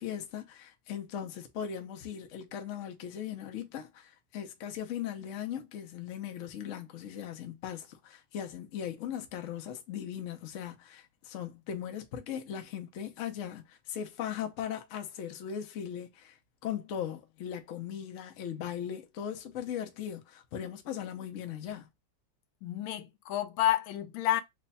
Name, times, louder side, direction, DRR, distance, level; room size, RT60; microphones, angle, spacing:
voice 1, 0.0-21.9, left 9 dB, 65° left, 0.7 m, -39 dB
voice 2, 22.6-24.4, left 13 dB, 85° left, 1.4 m, -30 dB
3.3 x 2.2 x 4.0 m
omnidirectional pair, 2.1 m